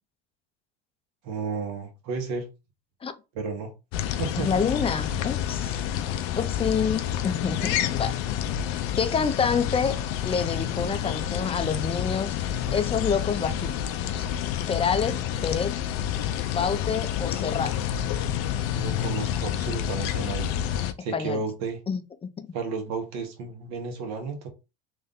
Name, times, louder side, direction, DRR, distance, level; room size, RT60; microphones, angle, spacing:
voice 1, 1.2-2.5 3.3-3.7 4.1-4.6 18.7-20.5 21.0-21.8 22.5-24.5, right 4 dB, 65° right, 1.4 m, -32 dB
sound 1, 3.9-20.9, left 10 dB, 70° left, 0.6 m, -29 dB
voice 2, 4.3-5.8 6.4-8.2 9.0-12.4 12.7-13.7 14.1-14.2 14.7-15.8 16.5-17.7 21.1-21.4 21.9-22.0 22.4-22.5, left 6 dB, 20° left, 0.5 m, -27 dB
3.5 x 2.6 x 3.7 m
supercardioid pair, 100°, 30 cm